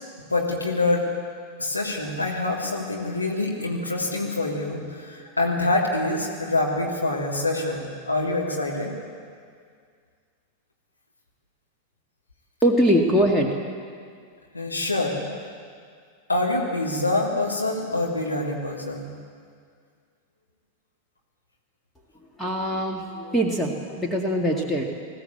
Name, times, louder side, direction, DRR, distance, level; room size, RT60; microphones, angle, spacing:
voice 1, 0.3-1.0 1.6-8.9 14.5-15.1 16.3-19.1, left 2 dB, 80° left, -2 dB, 3.0 m, -25 dB
voice 2, 12.6-13.5 22.4-24.8, equal, 5° left, 0 dB, 2.0 m, -22 dB
21.0 x 16.0 x 8.4 m, 2.1 s
figure-of-eight pair, 90°, 0 cm